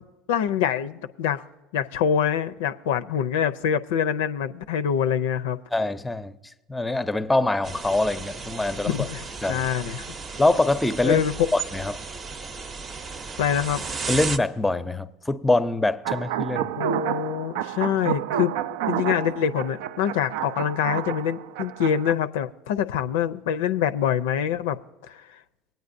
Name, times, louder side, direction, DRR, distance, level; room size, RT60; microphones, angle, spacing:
voice 1, 0.3-1.4 1.7-5.6 8.8-10.1 11.0-11.3 13.4-13.8 16.8-18.5 18.9-24.8 25.1-25.2, left 8 dB, 75° left, 0.4 m, -25 dB
voice 2, 5.7-6.4 6.7-9.1 9.4-9.7 10.4-11.2 11.5-12.0 14.1-16.7, left 2 dB, 10° left, 0.6 m, -24 dB
sound 1, 7.6-14.4, right 4 dB, 35° right, 0.7 m, -35 dB
sound 2, 16.0-22.1, right 11 dB, 75° right, 0.3 m, -30 dB
20.0 x 9.2 x 2.6 m
hypercardioid pair, 80°, 0 cm